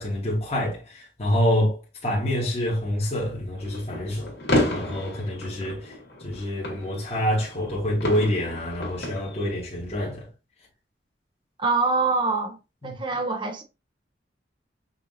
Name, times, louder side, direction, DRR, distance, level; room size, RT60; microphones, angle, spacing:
voice 1, 0.0-4.3 4.7-5.9 6.2-10.3 12.8-12.9, equal, 35° left, 1.5 m, -27 dB
sound 1, 3.6-9.5, left 1 dB, 75° left, 1.9 m, -31 dB
voice 2, 11.6-12.6 12.8-13.6, right 3 dB, 30° right, 0.6 m, -24 dB
5.6 x 2.6 x 2.7 m
head